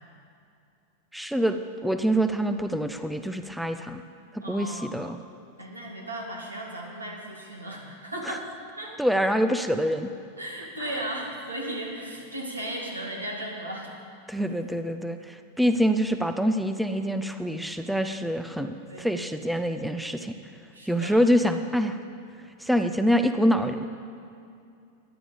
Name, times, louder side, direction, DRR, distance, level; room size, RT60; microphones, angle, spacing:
voice 1, 1.1-4.0 4.3-5.2 8.2-8.4 9.0-10.1 14.3-20.3 20.9-22.0 22.6-23.9, equal, ahead, 8 dB, 0.5 m, -25 dB
voice 2, 4.4-4.9 5.6-8.4 8.8-9.0 10.4-13.9 18.9-19.1 20.7-21.2, right 1 dB, 80° right, -1 dB, 1.9 m, -36 dB
15.0 x 10.0 x 5.1 m, 2.5 s
figure-of-eight pair, 90°, 0 cm